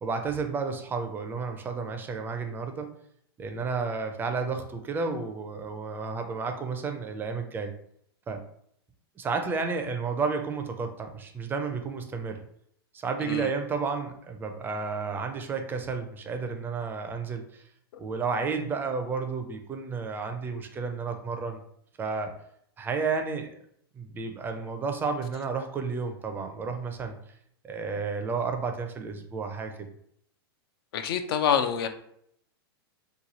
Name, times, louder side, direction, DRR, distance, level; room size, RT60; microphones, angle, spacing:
voice 1, 0.0-2.9 3.4-7.7 8.3-8.4 9.2-12.4 12.9-17.6 18.0-21.6 22.0-22.3 22.8-23.5 24.0-27.2 27.6-29.9, right 4 dB, 15° right, 5 dB, 0.4 m, -32 dB
voice 2, 30.9-31.9, left 8 dB, 65° left, 8 dB, 0.5 m, -26 dB
3.0 x 2.3 x 4.0 m, 0.69 s
hypercardioid pair, 130°, 13 cm